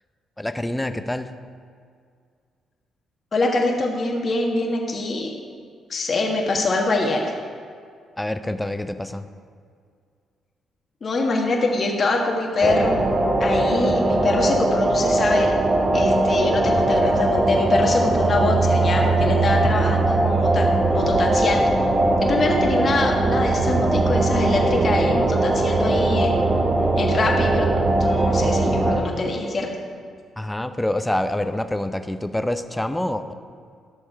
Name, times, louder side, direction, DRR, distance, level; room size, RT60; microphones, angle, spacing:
voice 1, 0.4-1.3 8.2-9.3 30.4-33.3, left 1 dB, 10° left, 10 dB, 0.7 m, -26 dB
voice 2, 3.3-5.3 5.9-7.3 11.0-13.0 13.4-15.5 15.9-21.8 22.2-26.5 27.0-29.7, left 2 dB, 45° left, 0 dB, 1.4 m, -24 dB
sound 1, 12.6-29.0, right 2 dB, 35° right, 1.2 m, -20 dB
12.0 x 6.4 x 4.6 m, 2.2 s
hypercardioid pair, 45°, 0 cm